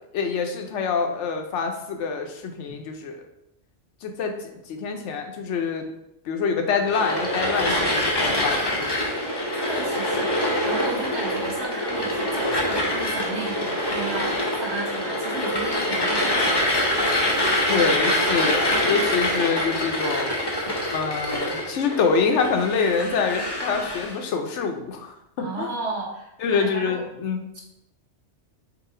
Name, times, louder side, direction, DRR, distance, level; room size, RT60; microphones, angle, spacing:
voice 1, 0.1-3.2 4.0-4.3 4.7-5.9 6.3-9.1 17.7-20.3 20.9-25.7 26.4-27.6, left 5 dB, 80° left, 4 dB, 1.0 m, -26 dB
sound 1, 6.9-24.2, left 1 dB, 25° left, 0.6 m, -25 dB
voice 2, 9.6-16.6 25.4-27.0 27.5-27.6, right 3 dB, 70° right, -3 dB, 1.4 m, -34 dB
4.8 x 2.8 x 3.7 m, 0.82 s
omnidirectional pair, 1.2 m